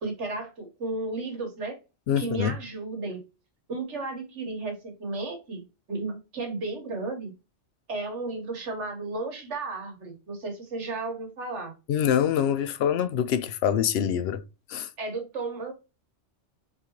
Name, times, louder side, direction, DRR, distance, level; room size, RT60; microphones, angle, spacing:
voice 1, 0.0-1.8 2.2-3.2 3.7-5.6 5.9-7.3 7.9-11.7 15.0-15.7, right 3 dB, 75° right, 1.6 m, -33 dB
voice 2, 2.1-2.6 11.9-14.4 14.7-14.9, left 9 dB, 65° left, 0.8 m, -25 dB
3.9 x 3.3 x 2.9 m
omnidirectional pair, 1.2 m